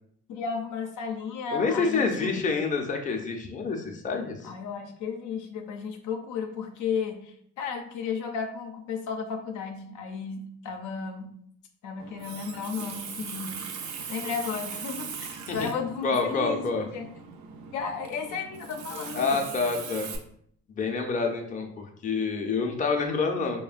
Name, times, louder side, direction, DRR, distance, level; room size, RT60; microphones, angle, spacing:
voice 1, 0.3-2.5 4.4-11.4 11.8-13.6 14.1-17.1 17.7-19.4, left 6 dB, 85° left, 3 dB, 0.5 m, -34 dB
voice 2, 1.5-4.5 15.5-15.7 16.0-16.8 19.1-20.1 20.7-23.6, left 4 dB, 25° left, 2 dB, 0.5 m, -27 dB
Water tap faucet, 12.0-20.2, right 6 dB, 75° right, 0.5 m, -40 dB
3.2 x 2.1 x 2.4 m, 0.65 s
cardioid pair, 90°, 30 cm